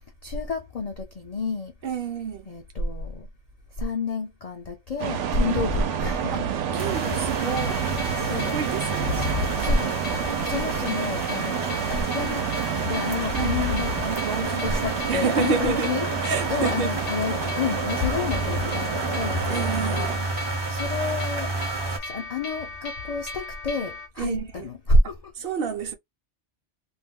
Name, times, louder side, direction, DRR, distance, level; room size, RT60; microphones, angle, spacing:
voice 1, 0.2-1.7 2.5-3.3 3.8-6.5 8.1-8.5 8.9-9.3 9.5-9.9 10.4-12.4 12.9-14.1 14.6-16.0 16.5-21.5 22.0-25.2, left 3 dB, 55° left, 0.4 m, -28 dB
voice 2, 1.8-2.5 5.4-5.6 6.3-7.9 8.3-9.2 13.3-14.8 15.1-16.0 16.2-16.9 19.5-20.3 24.2-24.7 25.4-25.9, right 6 dB, 60° right, 0.8 m, -30 dB
sound 1, 5.0-20.2, right 8 dB, 90° right, 0.9 m, -30 dB
sound 2, 6.8-22.0, right 3 dB, 30° right, 0.5 m, -31 dB
sound 3, 7.4-24.1, left 3 dB, 70° left, 1.0 m, -37 dB
2.4 x 2.2 x 3.5 m
omnidirectional pair, 1.2 m